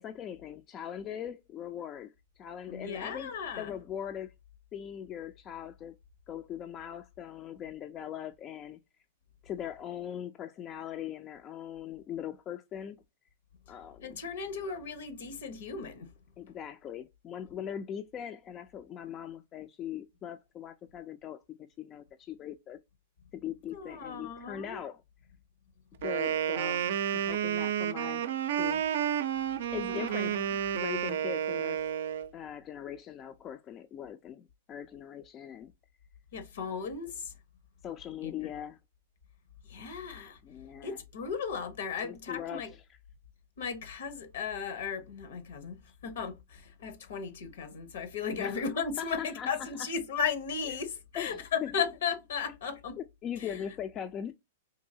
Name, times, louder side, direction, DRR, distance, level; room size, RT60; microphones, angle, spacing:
voice 1, 0.0-4.3 4.7-6.0 6.3-8.8 9.4-13.0 13.7-14.2 16.4-21.4 21.8-22.8 23.3-25.0 26.0-28.2 28.5-28.8 29.7-30.4 30.7-31.8 32.3-35.7 37.8-38.8 40.4-41.0 42.0-42.8 48.4-48.7 49.0-49.9 50.7-50.8 51.1-51.7 53.0-54.3, left 9 dB, 30° left, 0.3 m, -40 dB
voice 2, 2.7-3.7 14.0-16.1 23.7-24.8 29.9-30.5 36.3-37.3 38.2-38.4 39.7-40.4 40.8-42.7 43.6-53.0 53.4-53.6, left 6 dB, 75° left, 0.8 m, -36 dB
Wind instrument woodwind instrument, 26.0-32.3, right 9 dB, 70° right, 0.4 m, -31 dB
3.7 x 2.6 x 2.7 m
hypercardioid pair, 120°, 0 cm